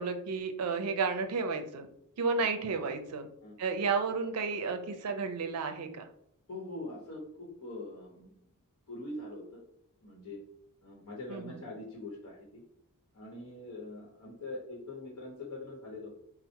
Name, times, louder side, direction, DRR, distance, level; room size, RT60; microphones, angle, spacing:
voice 1, 0.0-1.9 2.2-3.3 3.6-6.1 11.3-11.6, right 4 dB, 85° right, 7 dB, 0.5 m, -32 dB
voice 2, 6.5-8.5 8.9-9.6 10.0-10.4 10.8-12.6 13.1-16.1, left 2 dB, 90° left, -4 dB, 0.9 m, -43 dB
4.2 x 2.0 x 2.8 m, 0.72 s
head